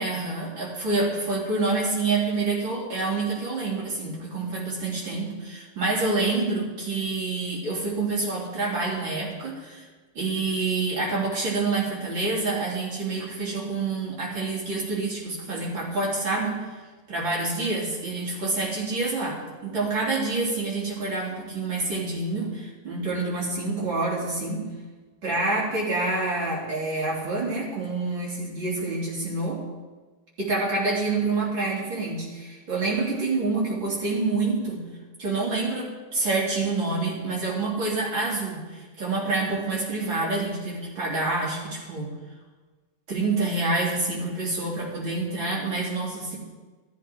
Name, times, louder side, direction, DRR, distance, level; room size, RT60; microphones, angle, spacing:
voice 1, 0.0-9.9 10.2-16.6 17.1-24.7 25.2-29.6 30.4-34.8 35.2-42.1 43.1-46.4, right 3 dB, 65° right, -4 dB, 4.3 m, -27 dB
14.0 x 14.0 x 4.6 m, 1.3 s
omnidirectional pair, 2.3 m